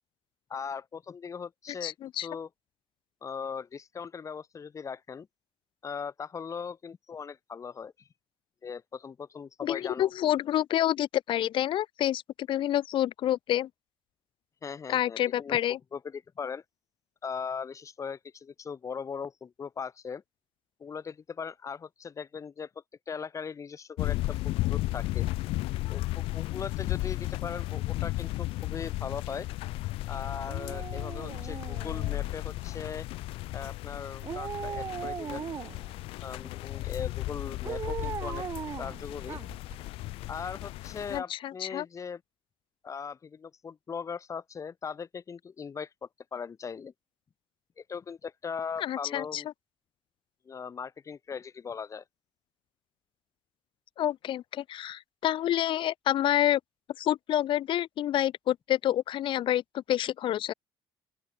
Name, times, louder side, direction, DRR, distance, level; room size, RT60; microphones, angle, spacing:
voice 1, 0.5-1.9 2.2-2.5 3.2-5.3 5.8-7.9 8.6-10.1 14.6-15.6 15.9-16.6 17.2-20.2 20.8-22.7 23.1-24.2 24.4-25.3 25.9-29.5 30.1-33.1 33.5-35.5 36.2-38.4 38.8-39.4 40.3-42.2 42.8-46.9 47.8-49.5 50.4-52.0, left 6 dB, 35° left, 1.6 m, -39 dB
voice 2, 1.8-2.3 9.6-13.7 14.9-15.8 41.1-41.8 48.8-49.4 54.0-56.6 57.0-60.5, left 12 dB, 65° left, 1.7 m, -28 dB
sound 1, 24.0-41.2, left 18 dB, 85° left, 1.5 m, -34 dB
Dog, 30.5-32.5 34.2-35.9 37.6-39.8 40.1-40.2, right 7 dB, 40° right, 0.6 m, -38 dB
open air
cardioid pair, 105°, 9 cm